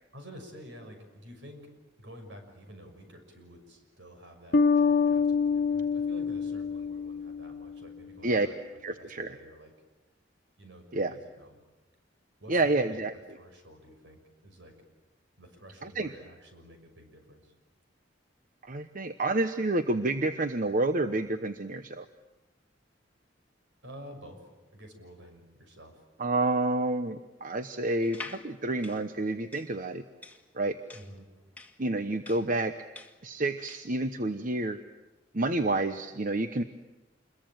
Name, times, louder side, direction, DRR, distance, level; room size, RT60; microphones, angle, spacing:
voice 1, 0.1-1.6 2.0-8.6 8.9-9.7 10.6-11.6 12.4-13.0 13.3-14.7 15.4-17.5 23.8-26.0 30.9-31.3, equal, 70° right, 6 dB, 6.4 m, -50 dB
sound 1, 4.5-7.9, left 5 dB, 60° left, 0.8 m, -26 dB
voice 2, 8.8-9.3 10.9-11.1 12.5-13.1 15.8-16.1 18.6-22.0 26.2-30.0 30.5-30.8 31.8-32.7 33.2-34.8 35.3-36.6, right 2 dB, 45° right, 9 dB, 1.0 m, -29 dB
sound 2, 28.0-34.0, left 3 dB, 10° left, 1.8 m, -47 dB
28.0 x 22.5 x 9.0 m, 1.1 s
head